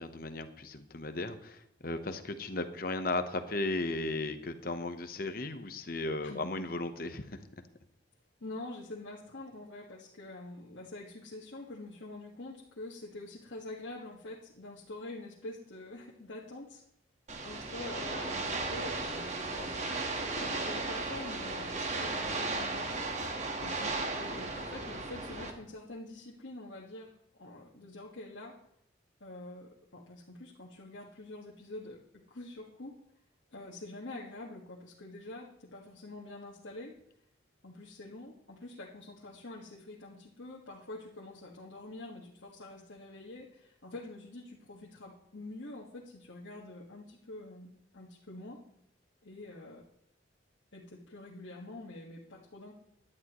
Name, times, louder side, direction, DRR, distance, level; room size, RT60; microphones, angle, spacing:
voice 1, 0.0-7.4 23.6-23.9, left 2 dB, 50° left, 9 dB, 0.9 m, -36 dB
voice 2, 6.2-6.5 8.4-16.8 17.4-23.1 24.1-27.1 27.4-28.6 29.2-33.0 33.5-36.9 37.6-48.6 49.2-49.8 50.7-52.7, left 2 dB, 85° left, -4 dB, 1.6 m, -46 dB
sound 1, 17.3-25.5, right 3 dB, 40° right, 1.5 m, -35 dB
17.5 x 11.0 x 3.1 m, 0.75 s
head